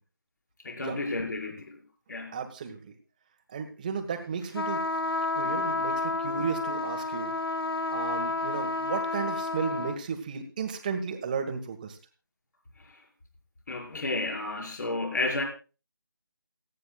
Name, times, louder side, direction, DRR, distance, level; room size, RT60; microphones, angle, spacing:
voice 1, 0.6-1.8 2.1-2.3 13.7-15.4, left 2 dB, 50° left, 2 dB, 5.7 m, -31 dB
voice 2, 2.3-2.9 3.5-5.0 5.3-7.3 7.9-12.0, right 6 dB, 20° right, 7 dB, 1.5 m, -34 dB
sound 1, 4.5-10.0, left 3 dB, 75° left, 1.3 m, -30 dB
28.5 x 9.5 x 2.4 m, 0.33 s
figure-of-eight pair, 165°, 12 cm